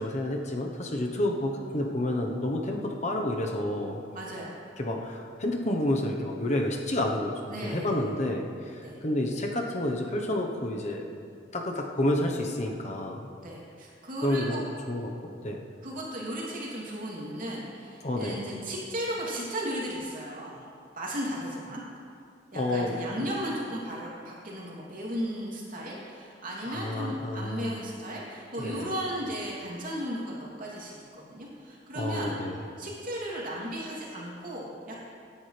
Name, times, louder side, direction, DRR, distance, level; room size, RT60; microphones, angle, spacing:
voice 1, 0.0-4.0 4.8-11.0 11.5-13.3 14.2-15.6 18.0-18.4 22.5-23.3 26.6-27.8 28.6-28.9 31.9-32.6, left 1 dB, 40° left, 1 dB, 1.0 m, -30 dB
voice 2, 4.1-4.5 7.5-7.9 8.8-9.0 13.4-14.6 15.8-20.6 20.9-21.8 22.5-32.3 32.8-35.0, equal, 50° right, -5 dB, 3.0 m, -35 dB
17.0 x 10.5 x 3.4 m, 2.4 s
head